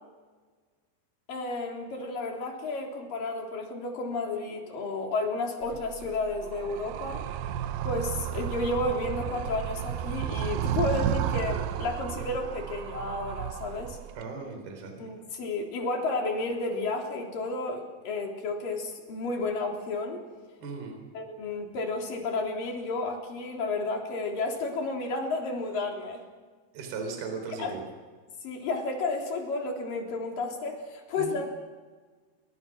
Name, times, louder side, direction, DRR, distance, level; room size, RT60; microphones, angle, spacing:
voice 1, 1.3-7.2 7.8-14.0 15.0-20.2 21.1-26.2 27.6-27.7 28.4-31.4, left 3 dB, 50° left, 1 dB, 5.0 m, -32 dB
Animal, 5.6-14.2, right 10 dB, 80° right, 2.0 m, -33 dB
voice 2, 14.2-15.1 20.6-21.0 26.7-27.8 31.2-31.4, right 4 dB, 55° right, 3 dB, 5.6 m, -37 dB
28.0 x 24.5 x 6.2 m, 1.4 s
omnidirectional pair, 5.3 m